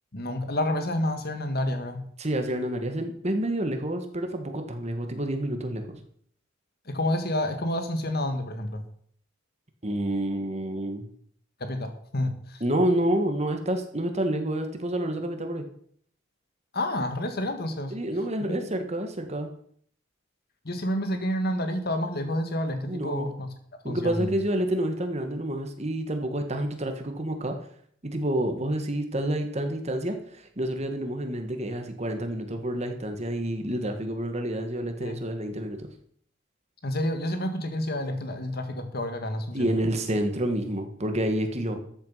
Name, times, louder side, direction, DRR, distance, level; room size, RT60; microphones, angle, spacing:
voice 1, 0.1-2.0 6.9-8.8 11.6-12.6 16.7-17.9 18.4-18.7 20.7-23.5 23.8-24.3 35.0-35.2 36.8-39.7, left 1 dB, 50° left, 7 dB, 1.7 m, -29 dB
voice 2, 2.2-6.0 9.8-11.0 12.6-15.6 17.9-19.5 22.9-23.3 23.8-27.6 28.0-35.9 39.5-41.8, right 1 dB, 30° right, 6 dB, 1.6 m, -28 dB
13.0 x 8.0 x 5.7 m, 0.62 s
head